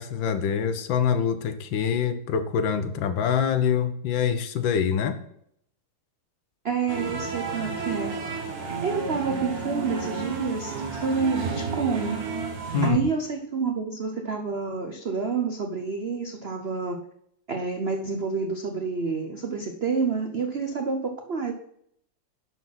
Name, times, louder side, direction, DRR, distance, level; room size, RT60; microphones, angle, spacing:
voice 1, 0.0-5.2 12.7-13.0, left 7 dB, 70° left, 10 dB, 1.5 m, -25 dB
voice 2, 6.6-8.1 8.8-12.2 12.8-17.0 17.5-21.5, right 5 dB, 70° right, 4 dB, 0.5 m, -28 dB
sound 1, 6.9-12.9, right 5 dB, 50° right, 1.7 m, -31 dB
11.0 x 4.3 x 5.8 m, 0.70 s
omnidirectional pair, 2.4 m